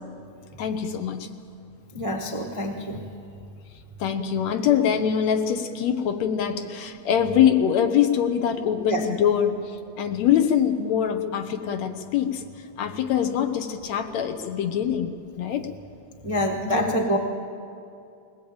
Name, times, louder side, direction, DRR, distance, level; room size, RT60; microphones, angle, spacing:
voice 1, 0.6-1.3 4.0-12.4 12.8-15.7 16.6-17.0, left 9 dB, 70° left, 7 dB, 2.2 m, -24 dB
voice 2, 1.9-3.0 8.9-9.0 16.2-17.2, equal, 30° right, 1 dB, 0.6 m, -26 dB
20.5 x 18.5 x 8.8 m, 2.5 s
omnidirectional pair, 3.4 m